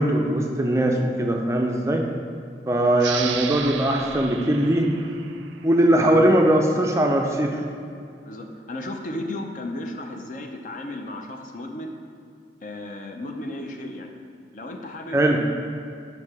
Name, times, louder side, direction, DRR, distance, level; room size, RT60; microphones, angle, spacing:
voice 1, 0.0-2.0 2.7-4.9 5.6-7.6 15.1-15.4, right 1 dB, 15° right, 1 dB, 0.4 m, -20 dB
sound 1, 3.0-6.2, right 8 dB, 85° right, 0.4 m, -34 dB
voice 2, 8.2-11.9 12.6-14.2 14.5-15.4, left 1 dB, 45° left, 3 dB, 0.5 m, -34 dB
5.3 x 4.6 x 4.8 m, 2.4 s
head